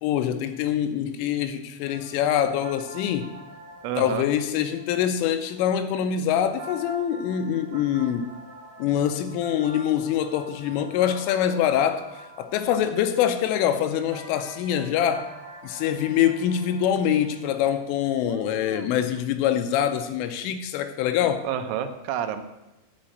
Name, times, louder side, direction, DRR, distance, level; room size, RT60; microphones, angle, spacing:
voice 1, 0.0-3.3 4.0-8.3 8.8-15.3 15.6-21.5, left 9 dB, 80° left, 3.1 m, -24 dB
sound 1, 1.8-18.2, right 1 dB, 50° right, 3.0 m, -46 dB
voice 2, 3.8-4.3 18.2-19.1 21.4-22.6, right 8 dB, 85° right, 3.5 m, -31 dB
10.5 x 6.2 x 8.8 m
omnidirectional pair, 5.9 m